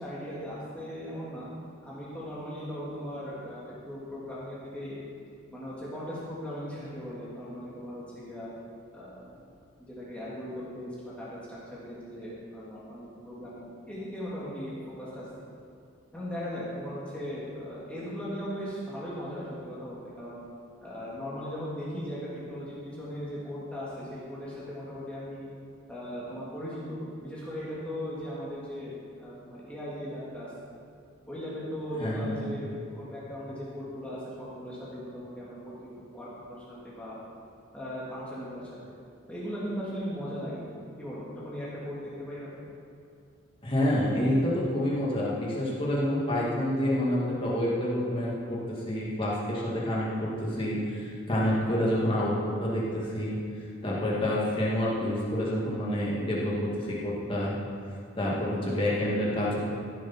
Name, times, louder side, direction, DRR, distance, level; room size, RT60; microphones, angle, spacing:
voice 1, 0.0-1.5 1.8-5.0 5.5-8.5 8.9-9.2 9.8-15.3 16.1-20.4 20.8-25.5 25.9-28.9 29.2-30.5 31.2-37.1 37.7-38.7 39.3-42.7, equal, 5° left, -9 dB, 2.1 m, -38 dB
voice 2, 32.0-32.5 43.6-53.4 53.8-57.5 58.2-59.6, left 1 dB, 25° left, -6 dB, 2.1 m, -28 dB
15.0 x 7.5 x 4.3 m, 2.3 s
head